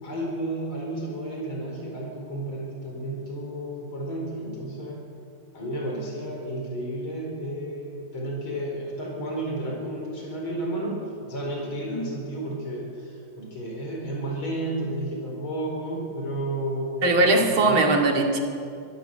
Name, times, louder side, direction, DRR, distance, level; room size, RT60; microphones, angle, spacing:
voice 1, 0.0-5.0 5.5-17.0 17.4-17.9, right 1 dB, 85° left, -1 dB, 5.5 m, -32 dB
voice 2, 17.0-18.4, right 2 dB, 85° right, 2 dB, 3.1 m, -20 dB
25.0 x 15.5 x 7.9 m, 2.4 s
omnidirectional pair, 2.2 m